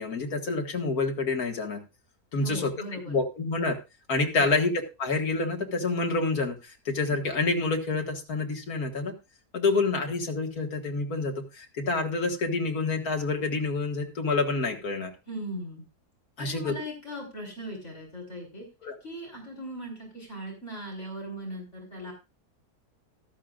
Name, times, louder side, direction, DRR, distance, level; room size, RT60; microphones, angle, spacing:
voice 1, 0.0-1.8 2.3-2.7 3.1-3.8 4.1-4.7 5.0-9.1 9.5-15.1 16.4-16.7 18.8-18.9, left 3 dB, 65° left, 3 dB, 2.3 m, -28 dB
voice 2, 2.4-3.2 4.3-4.5 15.3-15.9 16.4-18.7 19.0-22.1, equal, 45° left, -1 dB, 4.6 m, -39 dB
14.0 x 12.0 x 2.5 m, 0.27 s
omnidirectional pair, 1.7 m